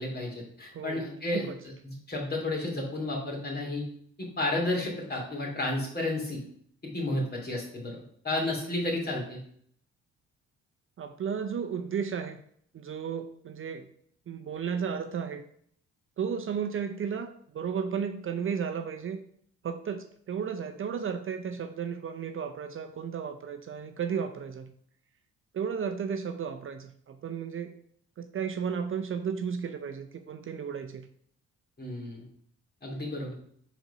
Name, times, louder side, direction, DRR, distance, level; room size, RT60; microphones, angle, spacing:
voice 1, 0.0-3.8 4.2-6.4 6.9-9.4 31.8-32.3 32.8-33.3, left 2 dB, 30° left, -1 dB, 2.5 m, -32 dB
voice 2, 0.7-1.1 1.3-1.6 11.0-12.4 12.7-13.9 14.3-15.4 16.2-19.2 19.6-24.7 25.5-27.8 28.2-31.1, right 7 dB, 45° right, 7 dB, 0.6 m, -34 dB
4.5 x 4.0 x 5.4 m, 0.63 s
cardioid pair, 90°, 30 cm